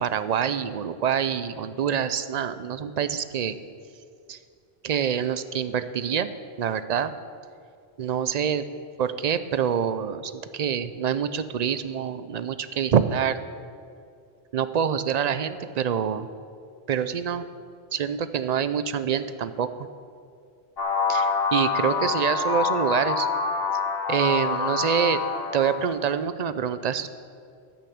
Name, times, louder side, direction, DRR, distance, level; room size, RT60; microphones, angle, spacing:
voice 1, 0.0-3.6 4.3-4.4 4.8-6.3 6.6-7.1 8.0-8.6 9.0-13.4 14.5-16.3 16.9-17.4 17.9-19.7 21.1-23.3 24.1-25.2 25.5-27.1, right 8 dB, 50° right, 12 dB, 0.5 m, -26 dB
sound 1, 20.8-25.9, left 5 dB, 65° left, 1.7 m, -26 dB
10.5 x 8.9 x 8.6 m, 2.3 s
omnidirectional pair, 1.1 m